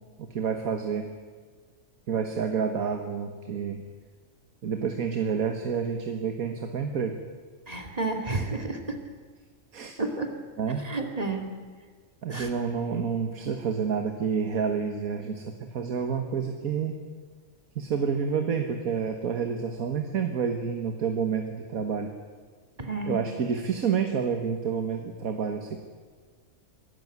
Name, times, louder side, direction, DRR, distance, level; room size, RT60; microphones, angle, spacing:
voice 1, 0.2-1.1 2.1-3.8 4.6-7.2 9.7-9.9 10.6-10.9 12.2-15.4 15.7-17.0 17.8-22.1 23.1-25.8, right 6 dB, 85° right, 5 dB, 1.8 m, -29 dB
voice 2, 7.7-9.0 10.0-10.3 10.8-11.4 12.3-12.5 22.8-23.2, right 3 dB, 25° right, 4 dB, 2.5 m, -31 dB
24.0 x 13.5 x 9.6 m, 1.5 s
omnidirectional pair, 1.5 m